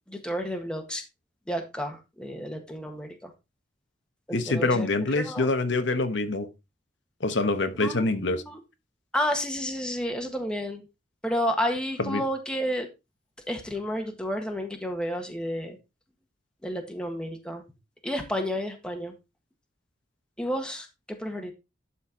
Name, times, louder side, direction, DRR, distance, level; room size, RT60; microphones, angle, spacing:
voice 1, 0.1-1.0 1.5-3.3 4.3-4.9 5.2-5.5 7.8-8.6 9.1-10.8 11.2-12.9 13.5-15.8 16.6-17.6 18.0-19.1 20.4-21.5, equal, 5° left, 1.6 m, -31 dB
voice 2, 4.3-6.5 7.2-8.4 12.0-12.2, left 2 dB, 65° left, 1.2 m, -25 dB
11.5 x 4.5 x 4.4 m
head